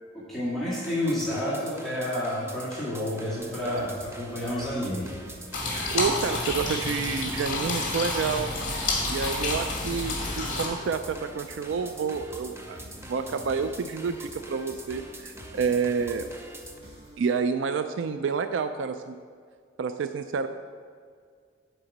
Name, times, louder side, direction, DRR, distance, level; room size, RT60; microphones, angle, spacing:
voice 1, 0.3-5.1, left 1 dB, ahead, -10 dB, 2.0 m, -30 dB
sound 1, 0.7-16.8, right 2 dB, 15° right, 0.7 m, -45 dB
sound 2, 3.4-17.4, equal, 35° right, 1.7 m, -48 dB
sound 3, 5.5-10.7, left 2 dB, 40° left, 2.1 m, -29 dB
voice 2, 5.9-8.5 9.1-12.8 13.1-16.3 17.2-19.2 19.8-20.5, right 5 dB, 75° right, 9 dB, 0.3 m, -29 dB
7.9 x 5.0 x 7.2 m, 2.1 s
head